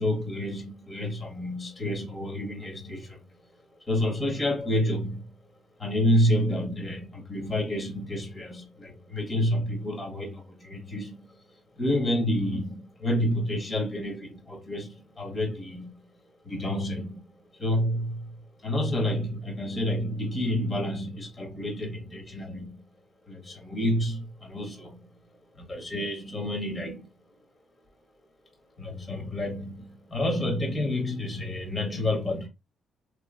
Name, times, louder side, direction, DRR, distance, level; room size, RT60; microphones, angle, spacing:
voice 1, 0.0-3.3 3.9-5.3 5.8-16.1 16.4-22.8 23.3-25.1 25.5-27.1 28.8-32.5, left 1 dB, 30° left, 1.5 m, -29 dB
3.1 x 2.8 x 2.5 m
cardioid pair, 90°, 0 cm